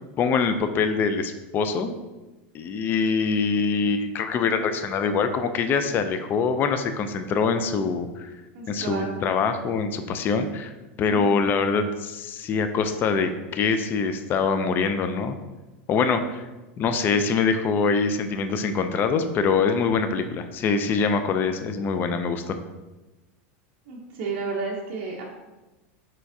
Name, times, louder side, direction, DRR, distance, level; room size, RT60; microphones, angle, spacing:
voice 1, 0.2-1.9 2.5-8.3 8.7-10.7 11.0-15.4 15.9-16.4 16.8-22.6, left 5 dB, 30° left, 8 dB, 0.3 m, -24 dB
voice 2, 8.5-9.2 23.9-25.2, right 4 dB, 55° right, -2 dB, 0.7 m, -32 dB
4.6 x 4.3 x 2.7 m, 1.1 s
supercardioid pair, 135°, 7 cm